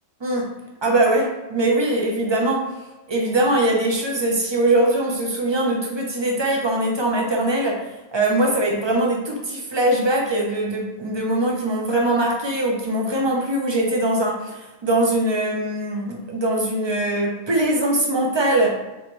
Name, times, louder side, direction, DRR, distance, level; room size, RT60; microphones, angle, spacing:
voice 1, 0.8-2.6 3.1-7.8 8.1-18.8, right 1 dB, 45° right, -1 dB, 0.3 m, -21 dB
4.7 x 2.5 x 3.0 m, 1.1 s
omnidirectional pair, 1.3 m